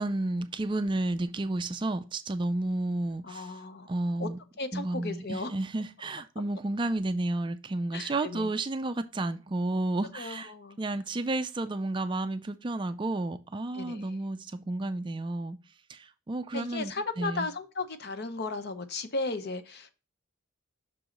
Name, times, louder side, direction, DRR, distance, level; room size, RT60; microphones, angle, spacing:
voice 1, 0.0-3.5 3.9-4.4 4.7-10.5 10.8-15.6 15.9-17.5, right 2 dB, 25° right, 0.4 m, -31 dB
voice 2, 3.2-3.9 4.2-4.3 4.6-5.5 7.9-8.5 10.1-10.8 13.7-14.1 16.5-19.9, left 3 dB, 50° left, 0.7 m, -35 dB
6.1 x 4.7 x 3.7 m
head